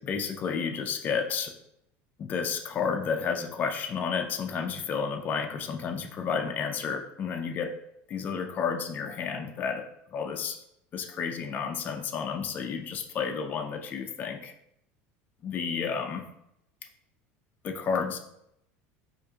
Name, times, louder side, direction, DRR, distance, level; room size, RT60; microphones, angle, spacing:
voice 1, 0.0-1.5 2.2-7.8 8.1-10.6 10.9-14.5 15.4-16.3 17.6-18.2, left 6 dB, 30° left, 4 dB, 0.3 m, -31 dB
4.6 x 2.5 x 2.7 m, 0.79 s
cardioid pair, 145°, 6 cm